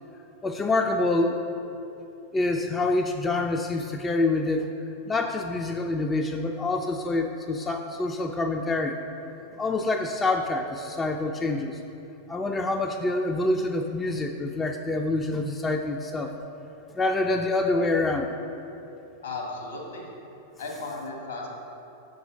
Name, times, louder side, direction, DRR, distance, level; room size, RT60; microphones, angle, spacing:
voice 1, 0.4-1.4 2.3-4.7 5.1-9.0 9.5-11.8 12.3-16.3 16.9-18.3, left 2 dB, 15° left, 3 dB, 0.4 m, -26 dB
voice 2, 19.2-20.1 20.6-21.5, left 3 dB, 70° left, -2 dB, 1.8 m, -35 dB
6.0 x 5.2 x 6.8 m, 3.0 s
figure-of-eight pair, 90°, 0 cm